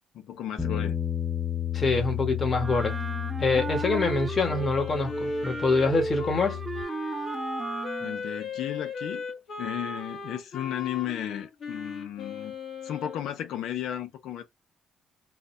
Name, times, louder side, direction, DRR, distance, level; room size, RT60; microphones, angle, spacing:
voice 1, 0.1-1.0 8.0-9.2 9.6-12.5 12.8-14.4, left 11 dB, 85° left, 0.9 m, -34 dB
Bass guitar, 0.6-6.8, left 10 dB, 5° left, 0.9 m, -32 dB
voice 2, 1.7-3.0 3.4-6.6, left 3 dB, 40° left, 1.5 m, -25 dB
Wind instrument woodwind instrument, 2.6-4.8 5.1-8.2, right 2 dB, 20° right, 0.6 m, -34 dB
Wind instrument woodwind instrument 2, 4.5-13.3, left 5 dB, 60° left, 1.5 m, -37 dB
3.9 x 2.4 x 2.7 m
cardioid pair, 90°, 0 cm